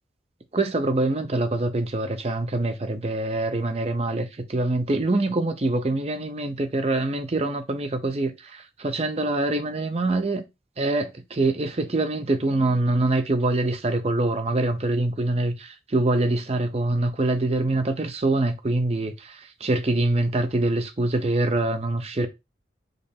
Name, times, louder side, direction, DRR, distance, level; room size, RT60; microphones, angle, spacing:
voice 1, 0.5-10.4 10.8-22.3, right 2 dB, 35° right, 0.6 m, -24 dB
5.3 x 2.0 x 4.2 m
head